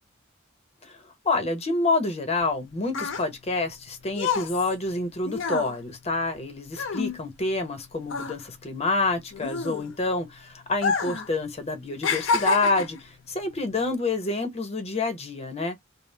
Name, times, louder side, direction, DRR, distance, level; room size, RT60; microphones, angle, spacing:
voice 1, 1.2-15.8, left 3 dB, 35° left, 0.8 m, -28 dB
sound 1, 2.4-7.8 8.0-10.2 10.7-11.3 11.6-13.1 13.8-14.0, left 5 dB, 70° left, 0.5 m, -29 dB
2.3 x 2.0 x 3.2 m
head